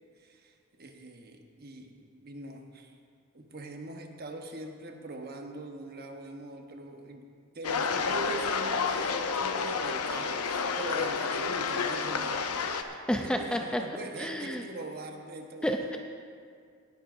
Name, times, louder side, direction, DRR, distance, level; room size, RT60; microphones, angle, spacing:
voice 1, 0.2-3.0 3.3-7.3 7.5-12.4 12.8-12.9 13.2-15.9, right 2 dB, 45° right, 3 dB, 1.0 m, -42 dB
sound 1, 7.6-12.8, left 5 dB, 80° left, 0.7 m, -30 dB
voice 2, 12.9-13.8 14.2-14.6 15.6-16.0, equal, 5° left, 3 dB, 0.4 m, -30 dB
18.0 x 11.0 x 2.6 m, 2.2 s
head